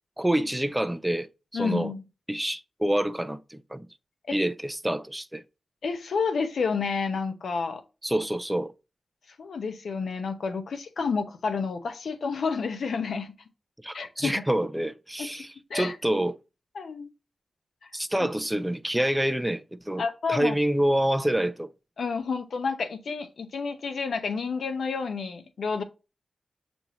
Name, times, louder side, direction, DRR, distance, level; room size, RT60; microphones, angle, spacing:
voice 1, 0.2-1.3 1.5-1.9 2.3-3.9 4.3-5.4 8.0-8.7 13.8-15.5 15.7-16.3 17.9-20.0 20.3-21.7, right 1 dB, 5° right, 0.3 m, -27 dB
voice 2, 1.5-2.0 4.3-4.4 5.8-7.8 9.4-13.3 13.9-14.4 15.2-15.3 15.7-16.0 16.7-17.1 17.8-17.9 18.2-18.3 20.0-20.6 22.0-25.8, left 5 dB, 85° left, 0.6 m, -30 dB
6.9 x 2.6 x 2.9 m
wide cardioid pair, 135°, 0 cm